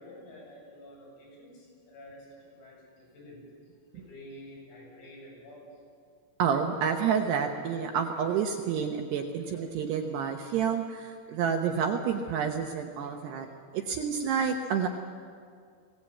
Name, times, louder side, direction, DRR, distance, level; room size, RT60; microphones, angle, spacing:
voice 1, 0.0-3.4 3.9-5.7 13.5-13.7, left 1 dB, 75° left, -4 dB, 10.5 m, -49 dB
voice 2, 6.4-13.5 13.7-14.9, right 7 dB, 75° right, 4 dB, 2.6 m, -29 dB
22.5 x 17.5 x 8.6 m, 2.1 s
omnidirectional pair, 6.0 m